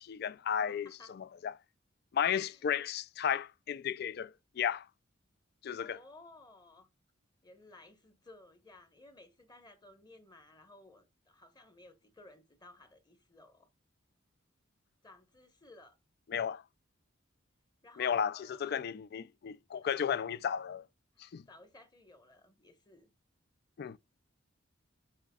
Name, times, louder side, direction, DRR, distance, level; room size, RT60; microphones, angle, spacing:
voice 1, 0.0-1.5 2.1-4.9 5.6-6.0 16.3-16.6 18.0-20.8 21.2-21.4 23.8-24.0, left 8 dB, 55° left, 0.3 m, -34 dB
voice 2, 0.7-1.1 2.4-2.6 5.8-6.9 7.4-13.7 15.0-16.0 17.8-18.8 19.8-20.0 21.1-23.1, left 2 dB, 20° left, 1.1 m, -57 dB
10.5 x 5.5 x 2.3 m
head